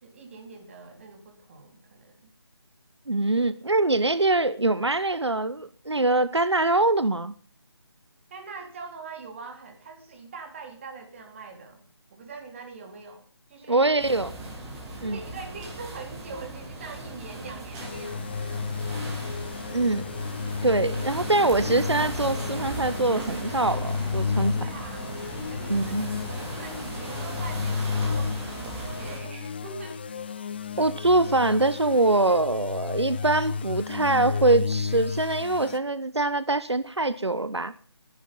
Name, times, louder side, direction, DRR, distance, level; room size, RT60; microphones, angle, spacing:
voice 1, 0.0-2.3 8.3-11.8 12.1-13.8 15.0-18.7 24.6-25.0 25.5-30.5, right 4 dB, 30° right, 4 dB, 3.9 m, -43 dB
voice 2, 3.1-7.3 13.7-14.4 15.0-15.2 19.7-20.1 20.6-24.6 25.7-26.1 30.8-37.7, right 2 dB, 80° right, 14 dB, 1.2 m, -23 dB
sound 1, 14.0-29.2, right 2 dB, 10° right, 3.8 m, -37 dB
sound 2, 17.8-35.8, left 5 dB, 25° left, 0.7 m, -32 dB
21.0 x 11.0 x 5.5 m, 0.38 s
figure-of-eight pair, 155°, 14 cm